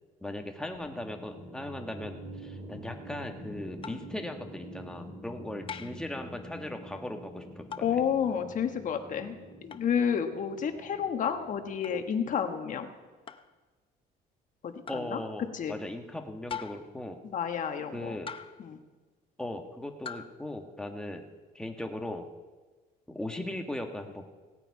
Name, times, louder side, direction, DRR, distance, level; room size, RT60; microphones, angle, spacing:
voice 1, 0.2-7.8 14.9-17.2 17.9-18.3 19.4-21.2 21.5-22.3 23.1-24.3, left 1 dB, 5° left, 3 dB, 1.3 m, -38 dB
sound 1, 0.7-12.9, equal, 20° right, 2.3 m, -47 dB
sound 2, 3.8-4.1 5.7-6.1 7.7-8.0 9.7-9.9 11.8-12.0 13.3-13.5 14.9-15.1 16.5-17.0 18.3-18.7 20.0-20.3, left 7 dB, 30° left, 0.6 m, -41 dB
voice 2, 7.8-9.4 9.6-12.9 14.6-15.2 15.5-15.8 17.2-18.2 18.6-18.8, left 7 dB, 50° left, 6 dB, 1.3 m, -30 dB
17.5 x 8.9 x 4.7 m, 1.3 s
cardioid pair, 110°, 17 cm